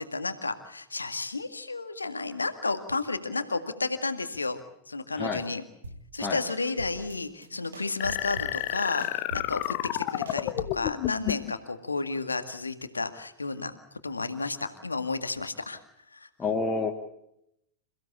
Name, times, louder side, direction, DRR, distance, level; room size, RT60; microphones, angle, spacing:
voice 1, 0.0-4.6 4.9-5.6 6.1-13.7 14.0-15.8 16.1-16.3, left 3 dB, 80° left, 9 dB, 2.0 m, -32 dB
sound 1, 5.8-6.2 6.5-7.2 7.4-8.7 9.0-10.9, right 1 dB, 70° right, 4.4 m, -43 dB
sound 2, 8.0-11.5, left 17 dB, 45° left, 1.1 m, -31 dB
voice 2, 16.4-16.9, left 4 dB, 15° left, -1 dB, 2.8 m, -28 dB
28.5 x 16.0 x 8.4 m, 0.78 s
figure-of-eight pair, 90°, 0 cm